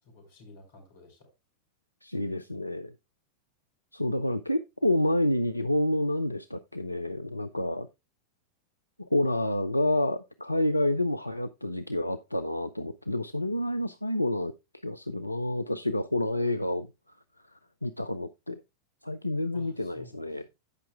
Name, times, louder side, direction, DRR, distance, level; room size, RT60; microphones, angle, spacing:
voice 1, 0.0-1.3 19.5-20.5, left 2 dB, 60° left, 4.9 m, -52 dB
voice 2, 2.0-2.9 3.9-7.9 9.1-14.5 14.8-16.9 17.8-18.6 19.0-20.5, left 1 dB, 85° left, 0.4 m, -29 dB
14.5 x 5.7 x 2.3 m
figure-of-eight pair, 90°, 0 cm